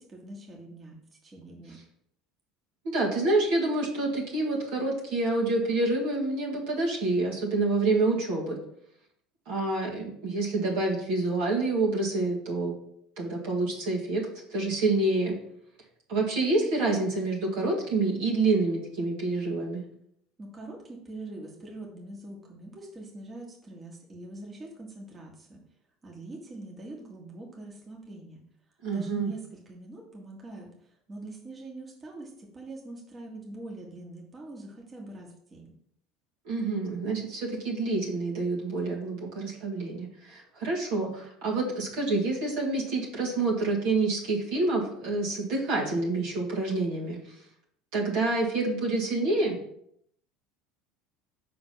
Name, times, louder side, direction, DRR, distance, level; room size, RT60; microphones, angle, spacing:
voice 1, 0.1-1.8 20.4-25.6 26.0-28.4 28.9-30.7 31.1-35.7, right 2 dB, 25° right, -1 dB, 1.9 m, -43 dB
voice 2, 2.8-8.6 9.5-12.7 13.2-14.2 14.5-15.4 16.1-19.8 28.8-29.3 36.5-47.2 47.9-49.6, right 2 dB, 60° right, -3 dB, 1.9 m, -27 dB
5.9 x 3.8 x 5.7 m, 0.70 s
figure-of-eight pair, 70°, 0 cm